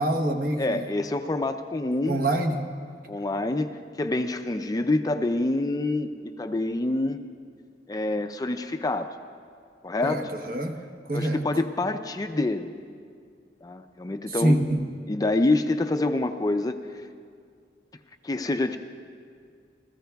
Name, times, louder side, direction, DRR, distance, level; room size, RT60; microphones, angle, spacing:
voice 1, 0.0-0.8 2.0-2.6 10.0-10.7 11.1-11.4 14.3-14.8, right 1 dB, 55° right, 5 dB, 1.0 m, -25 dB
voice 2, 0.6-2.2 3.1-3.7 4.0-7.2 7.9-9.2 9.8-10.3 11.1-12.7 13.6-14.7 15.1-16.8 18.2-18.8, left 2 dB, 20° left, 8 dB, 0.4 m, -26 dB
29.0 x 15.0 x 2.3 m, 2.2 s
head